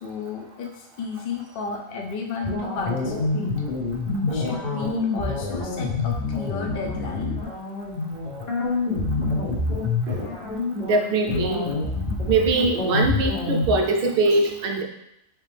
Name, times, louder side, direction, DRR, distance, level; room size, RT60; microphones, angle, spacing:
voice 1, 0.0-3.5 4.3-7.4, left 4 dB, 60° left, 1 dB, 0.6 m, -32 dB
sound 1, 2.4-13.7, left 3 dB, 35° left, 1.0 m, -27 dB
voice 2, 10.8-11.7 12.3-14.8, right 3 dB, 60° right, 3 dB, 0.6 m, -22 dB
4.4 x 3.3 x 3.3 m, 0.80 s
omnidirectional pair, 1.4 m